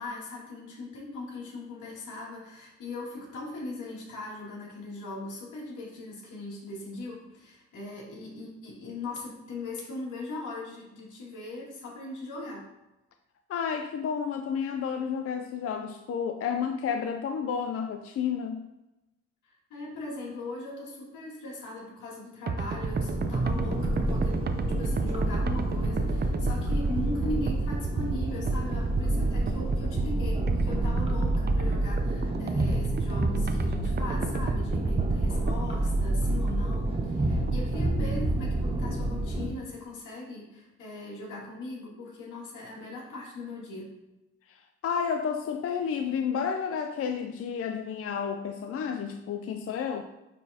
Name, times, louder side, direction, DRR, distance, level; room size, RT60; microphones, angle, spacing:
voice 1, 0.0-12.7 19.4-24.4 24.8-43.9, left 2 dB, 85° left, -3 dB, 2.2 m, -39 dB
voice 2, 13.5-18.7 44.8-50.0, left 7 dB, 50° left, 5 dB, 0.5 m, -31 dB
sound 1, 22.5-38.5, right 4 dB, 35° right, 0.6 m, -33 dB
sound 2, 22.8-39.5, right 1 dB, 20° right, 1.4 m, -28 dB
9.9 x 4.0 x 2.8 m, 0.96 s
cardioid pair, 90°, 30 cm